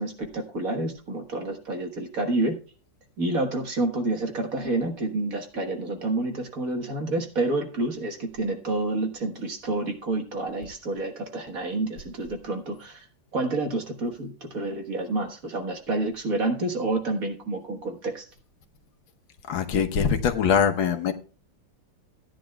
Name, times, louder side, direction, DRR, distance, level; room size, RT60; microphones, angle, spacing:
voice 1, 0.0-2.6 3.2-13.1 13.3-18.3, right 2 dB, 45° right, 1.8 m, -29 dB
voice 2, 19.5-21.1, left 7 dB, 75° left, 1.8 m, -23 dB
16.5 x 10.0 x 2.3 m
omnidirectional pair, 2.2 m